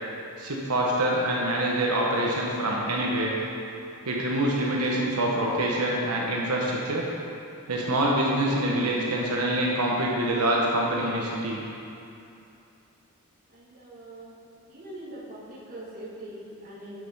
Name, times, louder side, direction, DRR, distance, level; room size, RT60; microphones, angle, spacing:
voice 1, 0.4-3.4 4.0-7.1 7.7-11.6, right 1 dB, 90° right, -3 dB, 1.1 m, -25 dB
voice 2, 13.6-14.3 14.7-17.0, right 1 dB, 40° right, -7 dB, 2.1 m, -42 dB
8.0 x 6.7 x 5.4 m, 2.7 s
head